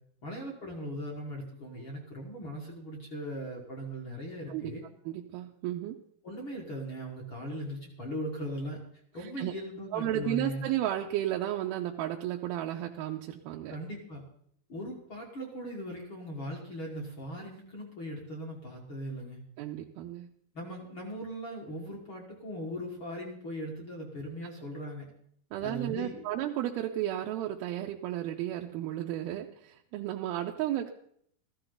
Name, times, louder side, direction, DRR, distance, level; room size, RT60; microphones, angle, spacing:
voice 1, 0.2-4.8 6.2-8.8 9.1-10.6 13.7-14.2 14.7-19.4 20.5-25.1 25.6-26.3, equal, 45° left, -2 dB, 1.8 m, -39 dB
voice 2, 5.1-6.0 9.2-9.5 9.9-13.8 19.6-20.3 25.5-30.9, right 12 dB, 80° right, 1 dB, 2.5 m, -33 dB
14.5 x 13.5 x 3.9 m, 0.66 s
omnidirectional pair, 4.6 m